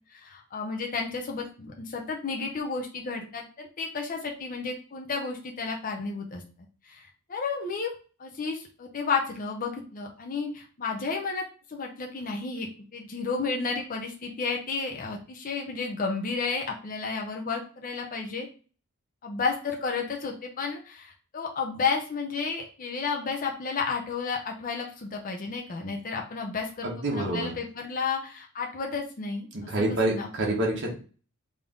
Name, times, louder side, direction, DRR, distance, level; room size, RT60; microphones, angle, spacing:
voice 1, 0.1-6.4 6.8-7.9 8.2-18.5 19.2-30.3, left 4 dB, 40° left, 1 dB, 0.5 m, -32 dB
voice 2, 26.8-27.5 29.5-30.9, right 1 dB, 55° right, -1 dB, 1.2 m, -27 dB
3.5 x 2.6 x 3.5 m, 0.38 s
head